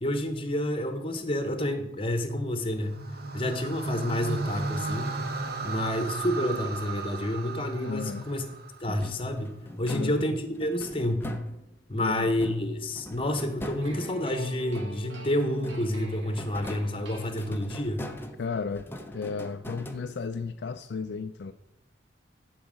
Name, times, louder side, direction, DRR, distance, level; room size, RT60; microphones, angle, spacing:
voice 1, 0.0-2.9 3.3-5.1 5.6-8.4 8.8-11.3 11.9-18.0, left 1 dB, 30° left, 8 dB, 1.0 m, -29 dB
sound 1, 2.8-9.1, right 3 dB, 50° right, 0.9 m, -35 dB
voice 2, 7.8-8.3 9.9-10.3 12.0-12.4 18.4-18.9 19.1-21.5, left 5 dB, 60° left, 8 dB, 0.4 m, -34 dB
sound 2, 8.9-11.9 12.3-15.2 15.5-20.5, left 1 dB, 10° left, 0.6 m, -42 dB
sound 3, 13.8-17.9, right 2 dB, 75° right, 2.3 m, -46 dB
11.0 x 4.8 x 6.2 m, 0.88 s
head